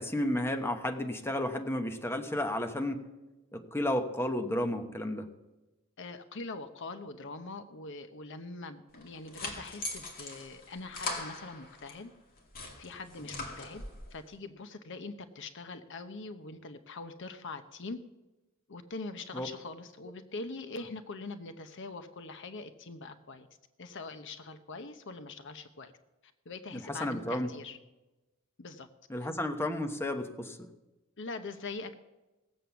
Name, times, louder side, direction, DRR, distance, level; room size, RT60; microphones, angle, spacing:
voice 1, 0.0-3.0 3.5-5.3 19.3-19.5 26.7-27.5 29.1-30.6, left 1 dB, 10° left, 5 dB, 1.0 m, -32 dB
voice 2, 6.0-12.1 12.8-13.8 14.1-18.0 18.7-23.5 23.8-25.9 26.2-27.8 28.6-28.9 29.2-29.3 31.2-31.9, left 3 dB, 60° left, 10 dB, 0.9 m, -43 dB
sound 1, 8.9-12.0 12.4-14.1, left 2 dB, 45° left, 2.4 m, -41 dB
17.5 x 7.7 x 7.0 m, 1.1 s
head